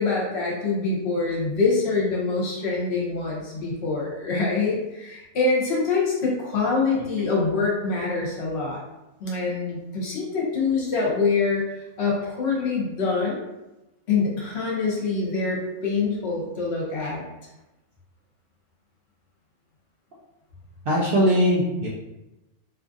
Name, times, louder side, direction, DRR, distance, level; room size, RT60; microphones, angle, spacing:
voice 1, 0.0-8.8 9.2-11.6 12.0-13.5 14.1-17.2, left 4 dB, 55° left, -4 dB, 0.9 m, -25 dB
voice 2, 20.9-21.9, equal, 80° right, -5 dB, 0.5 m, -20 dB
2.7 x 2.4 x 2.5 m, 0.96 s
omnidirectional pair, 1.5 m